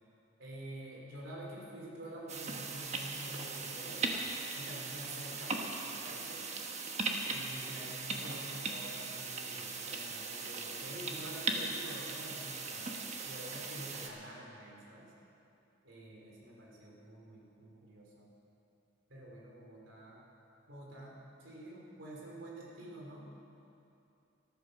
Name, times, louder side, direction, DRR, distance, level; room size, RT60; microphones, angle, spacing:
voice 1, 0.4-4.0 4.5-5.6 5.9-6.5 7.3-15.1 15.8-18.3 19.1-20.2 20.7-23.3, right 1 dB, 85° right, -3 dB, 3.2 m, -48 dB
sound 1, 2.3-14.1, right 3 dB, 35° right, 1.2 m, -39 dB
13.5 x 13.0 x 6.6 m, 2.7 s
head